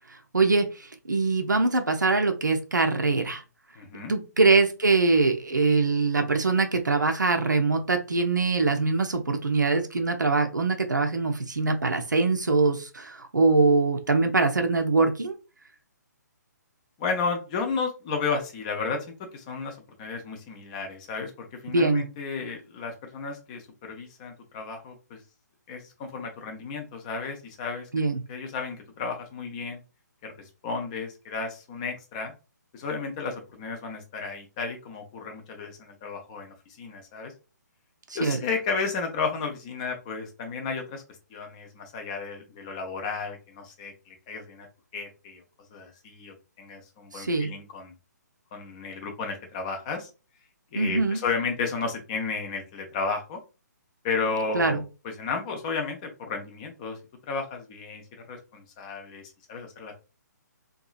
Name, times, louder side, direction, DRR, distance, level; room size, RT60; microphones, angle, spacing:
voice 1, 0.3-3.4 4.1-15.4 21.7-22.0 27.9-28.2 38.1-38.4 47.1-47.5 50.8-51.2 54.5-54.8, right 3 dB, 75° right, 6 dB, 0.5 m, -23 dB
voice 2, 3.8-4.2 17.0-19.1 19.3-25.2 25.7-27.9 28.3-29.8 30.2-30.3 30.6-32.3 32.7-37.3 38.1-41.0 41.3-44.7 44.9-45.4 45.7-47.9 48.5-50.1 50.7-53.4 54.0-57.0 57.3-58.0 58.3-59.9, left 4 dB, 20° left, 4 dB, 0.5 m, -33 dB
2.7 x 2.3 x 2.3 m, 0.32 s
figure-of-eight pair, 135°, 10 cm